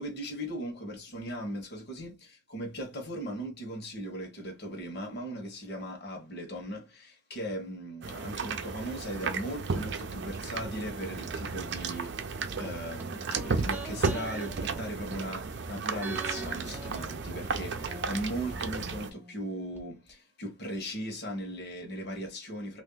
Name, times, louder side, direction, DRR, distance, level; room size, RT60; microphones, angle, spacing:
voice 1, 0.0-22.8, equal, 55° left, 1.2 m, -38 dB
sound 1, 8.0-19.1, right 4 dB, 60° right, 0.5 m, -34 dB
sound 2, 12.6-15.6 16.0-19.8 20.1-20.2, right 3 dB, 10° right, 0.5 m, -45 dB
3.2 x 2.6 x 3.9 m
head